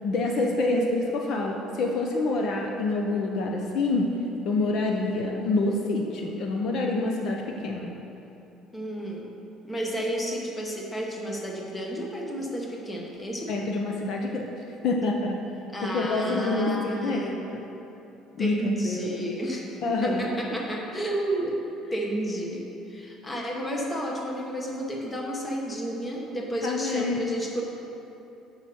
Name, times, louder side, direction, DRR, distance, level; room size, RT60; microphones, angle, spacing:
voice 1, 0.0-4.1 4.4-7.9 13.5-14.5 14.8-15.4 15.8-17.6 18.3-19.2 19.8-20.3 26.6-27.3, left 2 dB, 45° left, 1 dB, 0.7 m, -27 dB
voice 2, 8.7-9.3 9.6-13.7 15.7-17.4 18.4-21.6 21.9-27.6, right 1 dB, 10° left, -1 dB, 1.0 m, -31 dB
7.9 x 5.6 x 6.3 m, 3.0 s
cardioid pair, 170°, 0 cm